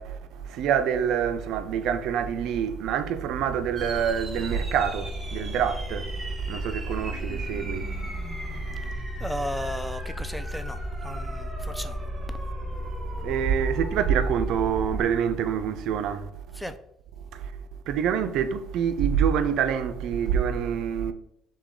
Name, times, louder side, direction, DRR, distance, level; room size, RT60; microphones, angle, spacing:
voice 1, 0.0-8.9 13.2-16.6 17.3-17.5 17.9-21.1, right 8 dB, 70° right, 0.4 m, -27 dB
sound 1, 3.8-15.0, equal, 20° right, 1.1 m, -34 dB
voice 2, 9.2-12.0 16.6-16.8, equal, ahead, 0.3 m, -35 dB
6.0 x 2.2 x 3.6 m
cardioid pair, 100°, 0 cm